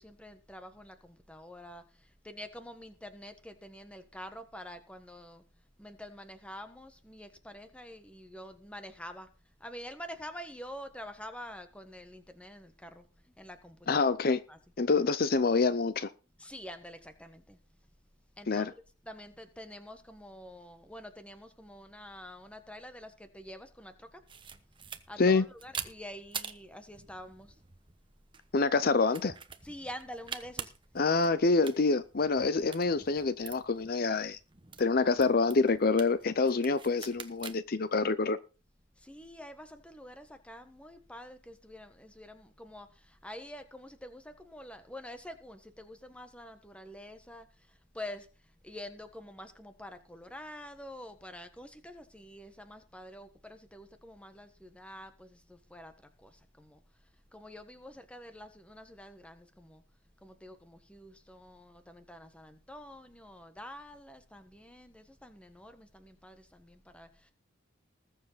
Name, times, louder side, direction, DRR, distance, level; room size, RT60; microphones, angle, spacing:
voice 1, 0.0-5.4 5.8-9.3 9.6-13.0 13.4-14.1 14.5-14.6 16.4-17.6 18.4-18.7 19.0-24.2 25.1-27.5 29.6-30.7 39.0-47.5 47.9-48.3 48.6-55.9 56.2-56.8 57.3-59.8 60.2-67.3, left 1 dB, 5° left, 1.3 m, -47 dB
voice 2, 13.9-14.4 14.8-16.1 18.5-18.7 25.2-25.4 28.5-29.3 31.0-34.4 34.8-38.4, left 4 dB, 50° left, 0.6 m, -26 dB
sound 1, 24.3-37.6, right 7 dB, 25° right, 1.1 m, -46 dB
20.0 x 7.4 x 4.0 m
head